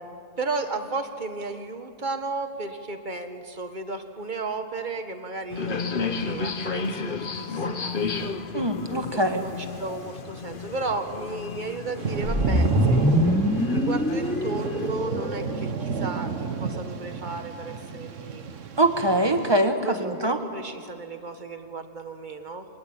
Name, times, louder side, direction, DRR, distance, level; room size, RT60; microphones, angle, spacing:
voice 1, 0.4-8.0 9.1-13.0 13.5-18.4 19.8-22.7, right 3 dB, 40° right, 7 dB, 1.7 m, -34 dB
sound 1, 5.5-14.9, left 4 dB, 45° left, 1.2 m, -33 dB
voice 2, 8.5-9.4 18.8-20.4, right 1 dB, 20° right, 6 dB, 1.6 m, -23 dB
Thunder / Rain, 12.0-19.5, right 5 dB, 80° right, 1.5 m, -30 dB
sound 2, 12.2-16.5, left 1 dB, 10° left, 0.5 m, -25 dB
25.5 x 19.5 x 8.9 m, 2.3 s
omnidirectional pair, 1.3 m